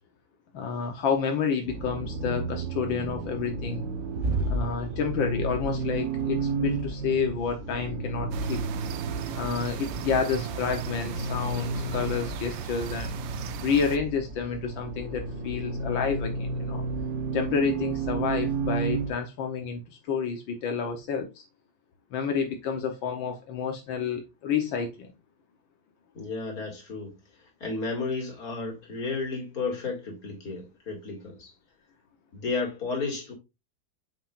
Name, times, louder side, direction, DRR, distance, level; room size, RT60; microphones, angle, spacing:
voice 1, 0.5-3.9 4.5-8.6 9.3-13.1 13.6-16.9 17.3-21.4 22.1-25.1, left 6 dB, 80° left, 1.8 m, -29 dB
Accelerating revving vroom, 1.7-19.1, right 3 dB, 50° right, 1.6 m, -32 dB
sound 1, 8.3-14.0, right 9 dB, 80° right, 1.5 m, -37 dB
voice 2, 26.1-27.1 27.6-31.5 32.3-33.3, left 4 dB, 50° left, 2.8 m, -32 dB
8.1 x 6.1 x 2.5 m
omnidirectional pair, 2.1 m